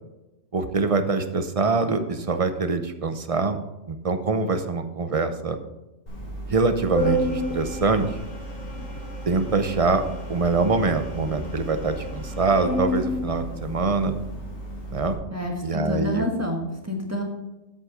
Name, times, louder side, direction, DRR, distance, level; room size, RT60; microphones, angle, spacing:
voice 1, 0.5-3.6 3.9-5.6 6.5-8.1 9.3-10.0 10.3-14.2 14.9-15.2 15.6-16.3, right 4 dB, 35° right, 8 dB, 0.7 m, -24 dB
Organ, 6.1-15.1, equal, 80° left, 4.7 m, -31 dB
voice 2, 15.3-17.2, left 1 dB, 10° right, 1 dB, 1.5 m, -28 dB
8.4 x 8.2 x 5.0 m, 1.0 s
omnidirectional pair, 1.3 m